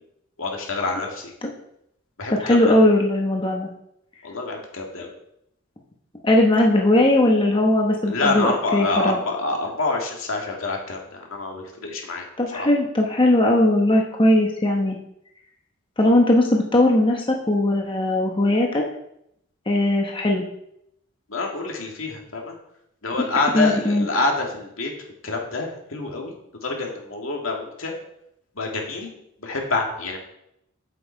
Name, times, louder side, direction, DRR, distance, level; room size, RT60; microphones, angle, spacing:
voice 1, 0.4-1.3 2.2-2.8 4.2-5.1 8.1-12.2 21.3-22.5 23.0-24.9 25.2-27.9 28.6-29.1 29.4-30.2, left 3 dB, 80° left, 0 dB, 2.2 m, -27 dB
voice 2, 2.4-3.7 6.2-9.2 12.4-15.0 16.0-18.8 19.7-20.4 23.5-24.1, left 1 dB, 25° left, 0 dB, 1.0 m, -19 dB
8.5 x 7.7 x 4.7 m, 0.76 s
head